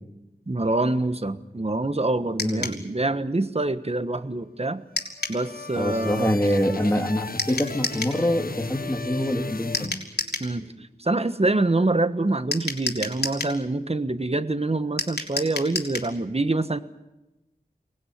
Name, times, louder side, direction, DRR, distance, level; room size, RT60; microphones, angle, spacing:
voice 1, 0.5-4.8 5.3-6.3 10.4-16.8, right 2 dB, 40° right, 12 dB, 1.4 m, -25 dB
sound 1, 2.4-2.8 5.0-5.4 7.4-8.2 9.7-10.5 12.5-13.6 15.0-16.1, left 3 dB, 80° left, 3.5 m, -30 dB
sound 2, 4.9-10.5, left 4 dB, 65° left, 1.3 m, -36 dB
voice 2, 5.7-10.0, equal, 15° left, 4 dB, 3.4 m, -25 dB
24.0 x 19.0 x 9.5 m, 1.0 s
wide cardioid pair, 40°, 17 cm